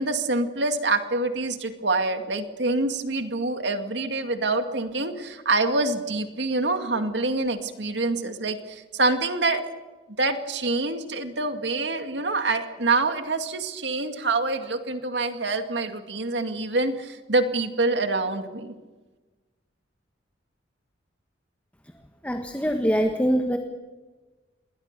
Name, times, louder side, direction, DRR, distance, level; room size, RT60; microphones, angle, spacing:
voice 1, 0.0-9.6 10.2-18.7, right 3 dB, 70° right, 7 dB, 2.2 m, -26 dB
voice 2, 22.2-23.6, equal, 10° left, 5 dB, 1.5 m, -23 dB
28.0 x 21.5 x 6.8 m, 1.3 s
head